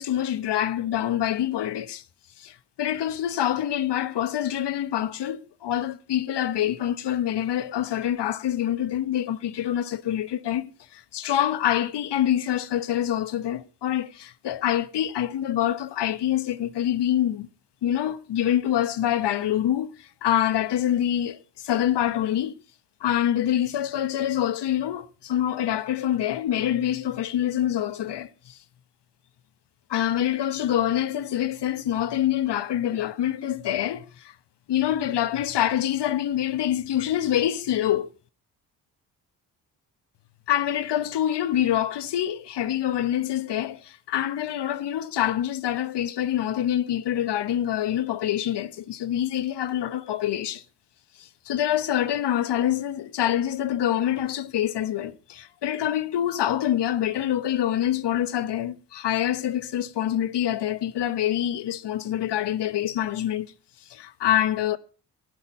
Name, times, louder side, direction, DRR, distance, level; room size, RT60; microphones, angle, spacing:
voice 1, 0.0-2.0 2.4-17.5 17.8-22.6 23.0-28.6 29.9-34.3 34.7-38.1 40.5-50.6 51.2-63.5 63.9-64.8, left 11 dB, 55° left, 1.1 m, -26 dB
14.5 x 12.0 x 4.4 m
hypercardioid pair, 45°, 50 cm